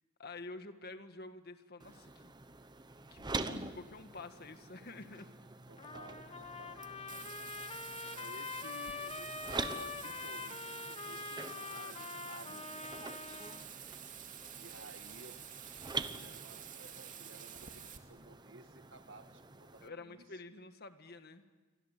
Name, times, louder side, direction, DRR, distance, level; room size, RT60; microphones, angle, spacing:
voice 1, 0.2-2.3 3.1-5.3 19.8-21.4, left 3 dB, 50° left, 8 dB, 1.7 m, -49 dB
sound 1, 1.8-19.9, right 3 dB, 20° right, 1.1 m, -46 dB
voice 2, 5.7-7.3 8.1-13.7 14.5-20.2, right 2 dB, 65° right, 8 dB, 1.7 m, -56 dB
Trumpet, 5.8-13.7, left 4 dB, 30° left, 1.3 m, -44 dB
Bathtub (filling or washing), 7.1-18.0, right 9 dB, 40° right, 2.4 m, -49 dB
29.0 x 24.5 x 8.4 m, 1.3 s
head